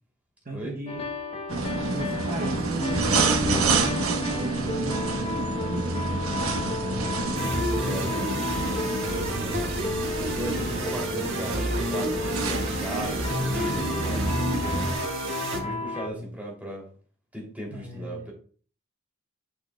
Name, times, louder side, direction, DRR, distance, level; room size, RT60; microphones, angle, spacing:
voice 1, 0.4-1.1 1.5-8.1 15.4-16.3 17.7-18.3, right 1 dB, 40° right, -1 dB, 0.8 m, -37 dB
sound 1, 0.9-16.1, left 2 dB, 25° left, 0.8 m, -34 dB
sound 2, 1.5-14.9, right 3 dB, 80° right, 1.0 m, -29 dB
sound 3, 7.3-15.6, right 1 dB, 65° right, 1.5 m, -31 dB
voice 2, 7.8-9.6 10.3-14.8 15.5-16.9 17.3-18.3, right 1 dB, 10° right, -2 dB, 2.8 m, -37 dB
8.8 x 6.2 x 2.3 m, 0.42 s
head